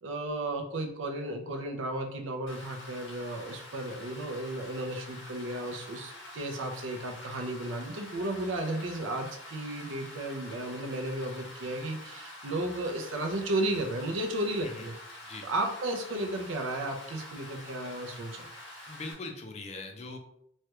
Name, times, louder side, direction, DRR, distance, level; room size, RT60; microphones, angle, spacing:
voice 1, 0.0-14.9 15.4-18.5, right 1 dB, 85° right, 4 dB, 0.5 m, -34 dB
Rain, 2.5-19.1, left 1 dB, 80° left, 1.4 m, -47 dB
voice 2, 18.9-20.2, left 3 dB, 35° left, 4 dB, 0.4 m, -41 dB
3.2 x 2.2 x 2.9 m, 0.72 s
head